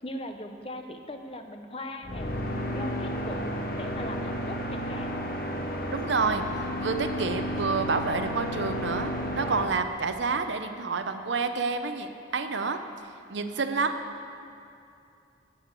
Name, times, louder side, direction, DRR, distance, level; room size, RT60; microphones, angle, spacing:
voice 1, 0.0-2.3 2.7-5.2, left 1 dB, 30° left, 6 dB, 0.6 m, -39 dB
sound 1, 2.0-9.6, equal, 50° left, 0.9 m, -32 dB
voice 2, 5.9-6.4 6.8-12.8 13.3-13.9, right 4 dB, 75° right, 8 dB, 0.7 m, -28 dB
11.5 x 6.5 x 8.1 m, 2.6 s
head